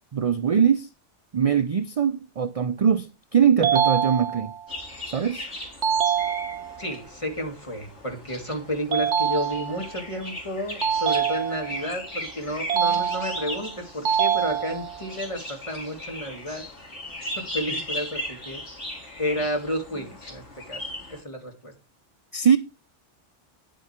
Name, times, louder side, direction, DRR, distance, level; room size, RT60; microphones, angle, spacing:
voice 1, 0.1-0.9 1.3-4.5 5.1-5.5 22.3-22.6, right 7 dB, 50° right, 0.4 m, -22 dB
sound 1, 3.6-4.6 5.8-6.8 8.9-9.9 10.8-11.9 12.7-13.6 14.0-15.0, right 8 dB, 80° right, 1.1 m, -25 dB
sound 2, 4.7-21.2, left 1 dB, 85° left, 4.3 m, -38 dB
voice 2, 6.8-16.7 17.2-18.6 19.2-20.8 21.1-21.7, equal, 25° left, 2.2 m, -31 dB
10.0 x 7.7 x 4.3 m
omnidirectional pair, 1.2 m